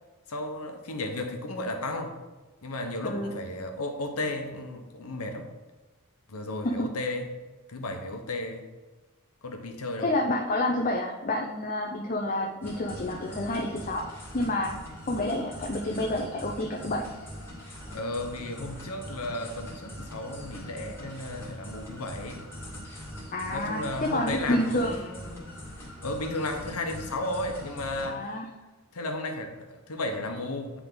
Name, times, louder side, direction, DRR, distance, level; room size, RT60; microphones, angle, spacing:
voice 1, 0.3-2.2 2.6-5.5 6.3-7.4 7.7-8.6 9.4-10.1 17.9-22.4 23.5-25.5 26.0-28.3 28.9-30.8, left 2 dB, 85° left, 4 dB, 1.0 m, -34 dB
voice 2, 10.0-14.0 14.3-14.7 15.1-17.1 23.3-25.0 28.0-28.5, left 1 dB, 35° left, 0 dB, 0.6 m, -29 dB
sound 1, 12.6-28.1, equal, 10° left, 1.7 m, -42 dB
9.6 x 3.5 x 3.8 m, 1.2 s
head